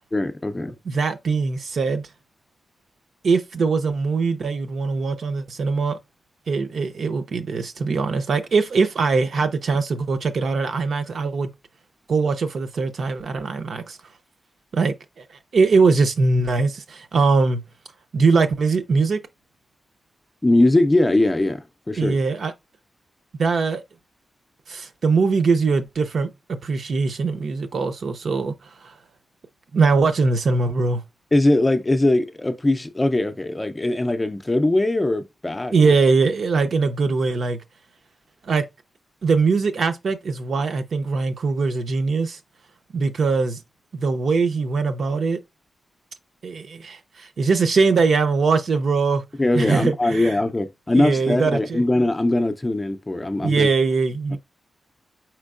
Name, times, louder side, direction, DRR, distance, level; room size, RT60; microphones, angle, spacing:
voice 1, 0.1-0.8 20.4-22.2 31.3-35.9 49.4-53.7 54.3-54.4, left 2 dB, 20° left, 0.5 m, -21 dB
voice 2, 0.9-2.1 3.2-6.0 6.5-11.5 12.1-14.0 14.7-15.2 15.5-17.6 18.1-19.2 22.0-22.5 23.4-23.8 24.7-28.5 28.8-28.9 29.7-31.0 35.7-37.6 38.4-38.6 39.2-42.4 42.9-43.6 43.9-45.4 46.4-49.2 49.5-50.3 50.9-51.8 53.4-54.4, right 4 dB, 65° right, 0.6 m, -21 dB
4.4 x 4.4 x 2.4 m
wide cardioid pair, 125°, 0 cm